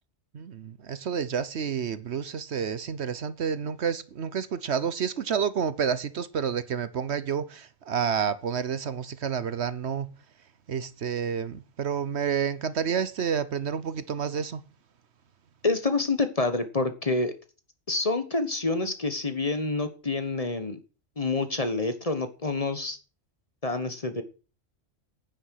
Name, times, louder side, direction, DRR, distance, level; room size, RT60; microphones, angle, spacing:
voice 1, 0.3-10.1 10.7-14.6, right 7 dB, 65° right, 1.1 m, -29 dB
voice 2, 15.6-17.3 17.9-20.8 21.2-23.0 23.6-24.2, left 3 dB, 30° left, 1.3 m, -27 dB
9.7 x 9.1 x 6.5 m
omnidirectional pair, 1.3 m